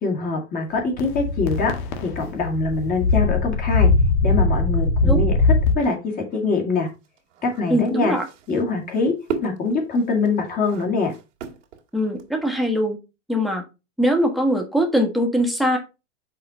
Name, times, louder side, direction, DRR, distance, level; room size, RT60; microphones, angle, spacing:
voice 1, 0.0-1.7 2.0-3.9 4.2-5.3 5.7-6.9 7.4-8.1 8.5-9.1 9.4-11.1, left 3 dB, 25° left, 2 dB, 2.0 m, -23 dB
sound 1, 1.0-5.7, left 3 dB, 50° left, 1.5 m, -20 dB
sound 2, 6.3-12.5, right 6 dB, 80° right, 2.0 m, -36 dB
voice 2, 7.7-8.2 11.9-13.0 13.3-13.6 14.0-15.8, equal, ahead, 2 dB, 1.4 m, -21 dB
5.8 x 4.4 x 5.4 m, 0.27 s
supercardioid pair, 150°, 35 cm